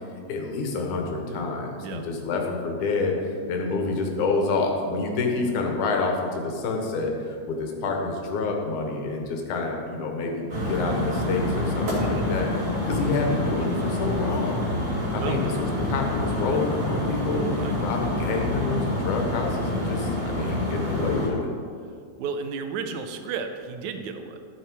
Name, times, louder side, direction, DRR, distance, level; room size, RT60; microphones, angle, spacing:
voice 1, 0.3-12.5 12.9-14.6 15.1-17.5 17.8-21.5, left 3 dB, 90° left, 2 dB, 2.7 m, -28 dB
sound 1, 10.5-21.3, left 1 dB, 50° right, 3.4 m, -27 dB
voice 2, 22.2-24.4, right 5 dB, 85° right, 7 dB, 2.1 m, -33 dB
13.0 x 6.7 x 4.6 m, 2.3 s
omnidirectional pair, 3.4 m